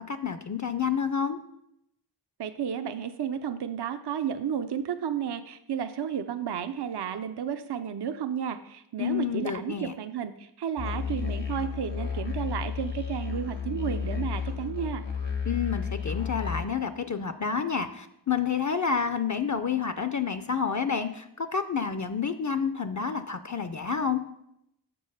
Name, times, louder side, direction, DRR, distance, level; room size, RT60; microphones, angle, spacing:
voice 1, 0.0-1.4 9.0-9.9 15.5-24.2, left 6 dB, 45° left, 10 dB, 0.5 m, -29 dB
voice 2, 2.4-15.0, right 8 dB, 70° right, 9 dB, 0.5 m, -32 dB
Musical instrument, 10.8-16.6, left 6 dB, 85° left, 1.3 m, -32 dB
7.1 x 5.4 x 5.5 m, 0.79 s
wide cardioid pair, 45°, 43 cm